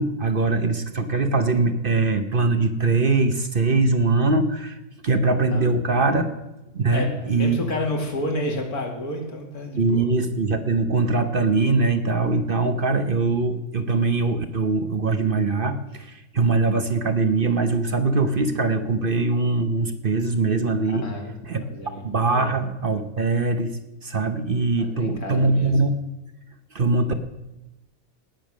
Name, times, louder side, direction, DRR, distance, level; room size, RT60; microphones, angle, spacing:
voice 1, 0.0-4.8 5.0-6.3 6.7-7.6 9.8-21.0 21.5-21.6 22.0-26.0 26.7-27.1, right 3 dB, 40° right, 8 dB, 1.0 m, -22 dB
voice 2, 5.5-6.0 6.9-7.1 7.4-10.1 20.8-22.5 24.8-25.7, left 1 dB, 90° left, 2 dB, 2.8 m, -31 dB
18.5 x 7.2 x 6.3 m, 0.99 s
omnidirectional pair, 1.6 m